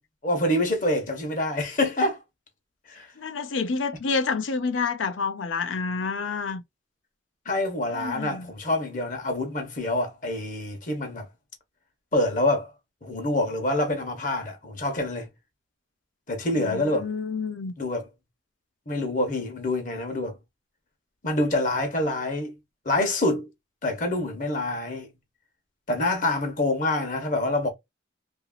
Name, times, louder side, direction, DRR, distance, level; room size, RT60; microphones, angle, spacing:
voice 1, 0.2-2.2 2.9-3.1 7.5-11.3 12.1-12.7 13.0-15.3 16.3-17.1 17.8-18.1 18.9-20.4 21.2-22.5 22.8-23.5 23.8-25.1 25.9-27.7, left 1 dB, 40° left, 0.9 m, -26 dB
voice 2, 3.2-6.6 7.9-8.5 16.5-17.7, left 4 dB, 80° left, 0.6 m, -29 dB
2.9 x 2.6 x 2.3 m
head